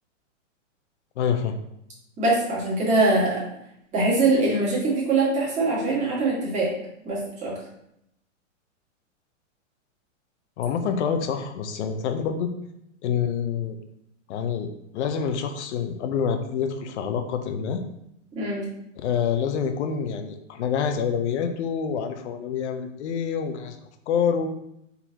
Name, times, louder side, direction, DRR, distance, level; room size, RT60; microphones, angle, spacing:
voice 1, 1.2-1.5 10.6-12.5 13.0-13.8 14.3-17.8 19.0-23.8 24.1-24.5, left 7 dB, 60° left, 7 dB, 0.7 m, -27 dB
voice 2, 2.2-3.4 3.9-6.7 7.0-7.5 18.3-18.7, right 2 dB, 20° right, -6 dB, 1.6 m, -23 dB
4.4 x 4.1 x 2.8 m, 0.78 s
hypercardioid pair, 145°, 38 cm